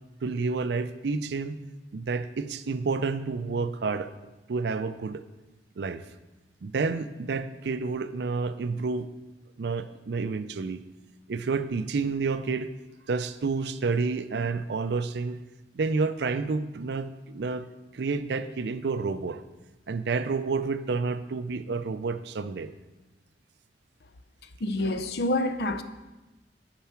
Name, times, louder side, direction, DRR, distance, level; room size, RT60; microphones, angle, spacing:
voice 1, 0.2-1.6 1.9-4.1 4.5-5.2 5.8-6.0 6.6-9.1 9.6-10.8 11.3-12.7 13.1-15.4 15.7-17.7 17.9-19.4 19.9-22.7, right 4 dB, 75° right, 0.4 m, -29 dB
voice 2, 24.6-25.8, left 1 dB, 65° left, 0.5 m, -27 dB
8.9 x 4.7 x 5.7 m
head